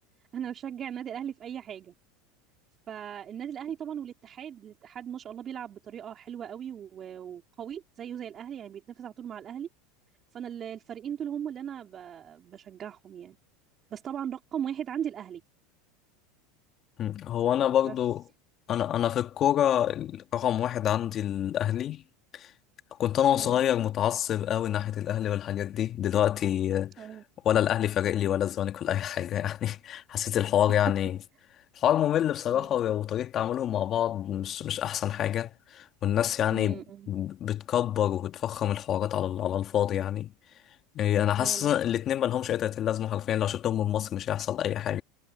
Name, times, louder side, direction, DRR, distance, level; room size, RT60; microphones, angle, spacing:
voice 1, 0.3-1.9 2.9-9.7 10.3-13.4 13.9-15.4 17.5-18.0 23.3-23.6 27.0-27.2 30.7-30.8 32.5-32.9 36.5-37.1 41.4-41.7, right 9 dB, 35° right, 3.8 m, -38 dB
voice 2, 17.0-18.2 18.7-22.0 22.3-22.5 23.0-27.1 27.5-31.2 31.8-36.8 37.1-40.3 41.0-45.0, left 11 dB, 40° left, 1.7 m, -27 dB
supercardioid pair, 110°, 0 cm